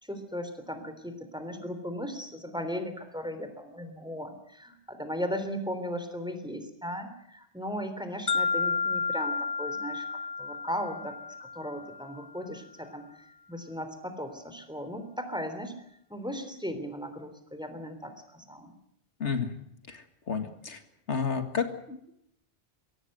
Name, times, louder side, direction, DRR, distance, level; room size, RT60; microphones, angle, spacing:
voice 1, 0.0-15.8 16.1-18.7, equal, 5° right, 8 dB, 3.4 m, -37 dB
sound 1, 8.3-12.3, left 5 dB, 35° left, 1.1 m, -31 dB
voice 2, 19.2-19.5 19.9-20.0 20.3-20.8 21.1-22.1, left 6 dB, 85° left, 7 dB, 2.2 m, -31 dB
24.0 x 17.5 x 7.9 m, 0.75 s
omnidirectional pair, 1.1 m